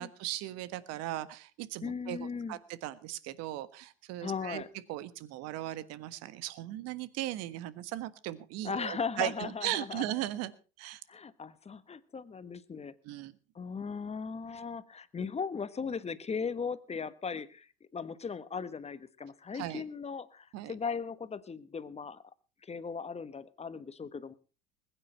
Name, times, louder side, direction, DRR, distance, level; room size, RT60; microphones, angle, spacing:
voice 1, 0.0-4.6 4.9-10.5 10.8-11.0 13.0-13.3 19.5-19.8 20.5-20.7, right 15 dB, 55° right, 16 dB, 1.4 m, -38 dB
voice 2, 1.8-2.6 4.2-4.7 8.6-10.0 11.1-12.9 13.5-22.2 22.6-24.3, left 5 dB, 20° left, 15 dB, 1.2 m, -38 dB
20.5 x 9.2 x 5.5 m, 0.36 s
hypercardioid pair, 75°, 30 cm